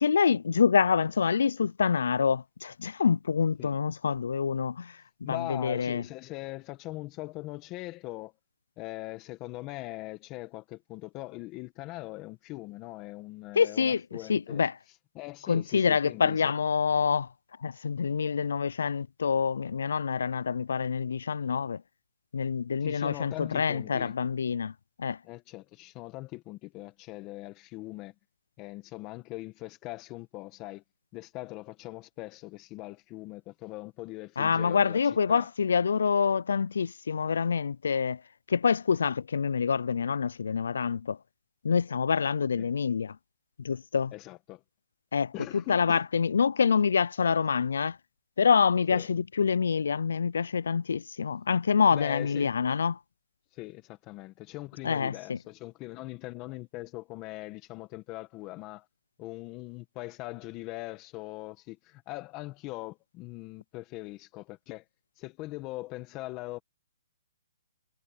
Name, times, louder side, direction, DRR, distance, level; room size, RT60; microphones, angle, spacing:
voice 1, 0.0-4.9 5.3-6.0 13.6-14.0 14.3-14.7 15.5-17.3 17.6-21.8 22.3-24.7 25.0-25.2 34.4-38.2 38.5-41.2 41.6-43.2 43.6-44.1 45.1-48.0 48.4-53.0 54.8-55.4, left 6 dB, 75° left, 0.4 m, -26 dB
voice 2, 5.2-8.3 8.8-16.5 22.8-24.1 25.2-28.1 28.6-30.8 31.1-35.5 42.6-42.7 44.1-44.6 45.3-46.0 48.9-49.1 51.9-52.5 53.5-58.9 59.2-64.8 65.2-66.6, left 19 dB, 25° left, 1.3 m, -41 dB
hypercardioid pair, 155°, 0 cm